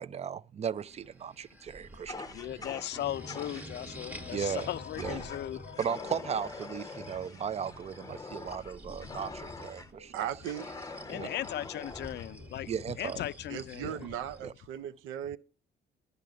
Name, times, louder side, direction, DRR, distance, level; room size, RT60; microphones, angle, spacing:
voice 1, 0.0-2.3 4.3-4.7 5.0-5.3 5.8-10.1 11.1-11.3 12.7-13.2 13.8-14.0 14.4-14.5, right 8 dB, 35° right, 0.4 m, -36 dB
sound 1, 0.8-14.5, equal, 10° right, 0.9 m, -49 dB
sound 2, 1.7-13.8, right 2 dB, 65° right, 0.9 m, -58 dB
Fire, 2.1-3.7 5.0-5.4 5.7-9.9 10.4-12.3, left 3 dB, 20° left, 0.7 m, -44 dB
voice 2, 2.3-6.2 9.0-9.2 11.1-12.7 13.0-14.1, left 13 dB, 60° left, 0.4 m, -38 dB
voice 3, 10.1-10.7 13.5-15.4, right 10 dB, 90° right, 0.5 m, -37 dB
10.5 x 6.7 x 4.9 m
cardioid pair, 90°, 20 cm